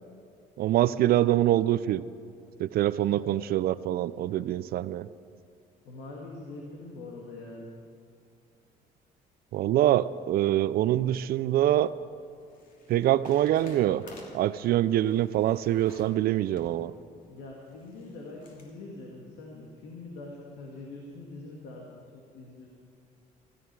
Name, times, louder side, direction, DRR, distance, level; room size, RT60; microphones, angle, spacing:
voice 1, 0.6-2.0 2.6-5.1 9.5-11.9 12.9-14.0 14.3-16.9, right 13 dB, 65° right, 16 dB, 0.5 m, -25 dB
voice 2, 3.1-3.5 5.8-7.7 17.2-22.7, left 2 dB, 90° left, -1 dB, 2.1 m, -44 dB
sound 1, 11.7-18.7, left 1 dB, 55° left, 2.9 m, -53 dB
16.0 x 14.0 x 4.8 m, 2.4 s
cardioid pair, 110°, 17 cm